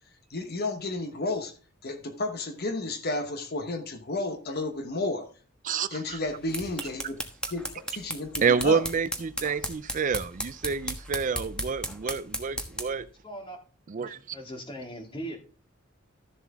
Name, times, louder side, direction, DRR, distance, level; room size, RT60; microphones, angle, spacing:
voice 1, 0.3-1.5 1.8-5.3 5.9-7.2 7.5-8.8, left 2 dB, 50° left, 1.0 m, -32 dB
voice 2, 5.6-6.2 8.4-13.1 13.9-14.4, right 6 dB, 40° right, 0.4 m, -28 dB
sound 1, 6.2-13.0, equal, 5° left, 1.2 m, -36 dB
voice 3, 13.2-13.6 14.0-15.4, right 1 dB, 25° left, 2.3 m, -39 dB
13.0 x 7.2 x 3.6 m
head